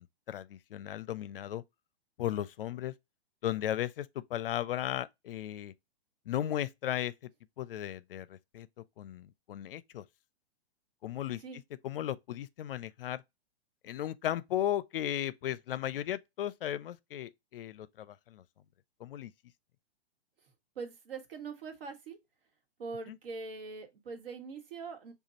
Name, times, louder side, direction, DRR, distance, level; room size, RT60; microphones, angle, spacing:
voice 1, 0.0-1.6 2.2-2.9 3.4-4.1 4.3-5.7 6.3-7.1 7.6-8.7 9.0-10.0 11.0-11.4 11.8-13.2 13.8-18.4 19.0-19.3, left 12 dB, 60° left, 0.5 m, -35 dB
voice 2, 20.7-22.2 22.8-25.1, right 4 dB, 60° right, 1.4 m, -42 dB
5.0 x 2.4 x 2.8 m
figure-of-eight pair, 120°, 32 cm